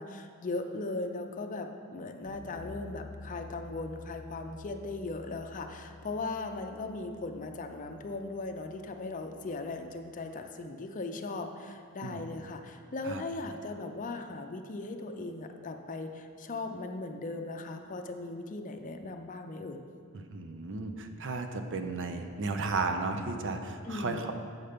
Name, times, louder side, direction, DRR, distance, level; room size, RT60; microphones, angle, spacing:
voice 1, 0.0-19.8 23.8-24.3, left 2 dB, 35° left, 5 dB, 0.5 m, -38 dB
sound 1, 2.3-10.4, left 2 dB, 85° right, 1.0 m, -51 dB
voice 2, 20.1-24.3, right 3 dB, 55° right, 6 dB, 0.6 m, -34 dB
7.9 x 5.6 x 5.1 m, 2.3 s
head